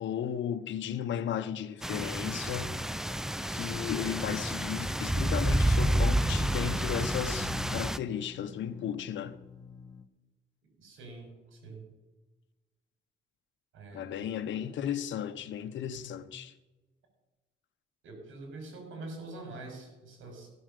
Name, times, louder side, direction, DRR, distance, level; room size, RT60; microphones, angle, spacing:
voice 1, 0.0-2.8 3.4-9.3 13.9-16.5, left 9 dB, 70° left, 1.0 m, -35 dB
sound 1, 1.8-8.0, right 1 dB, ahead, 0.5 m, -29 dB
sound 2, 4.4-10.1, left 6 dB, 20° left, 1.4 m, -47 dB
voice 2, 10.8-11.8 13.7-14.2 18.0-20.5, right 2 dB, 80° right, 5.1 m, -45 dB
16.0 x 7.2 x 6.7 m
cardioid pair, 90°, 20 cm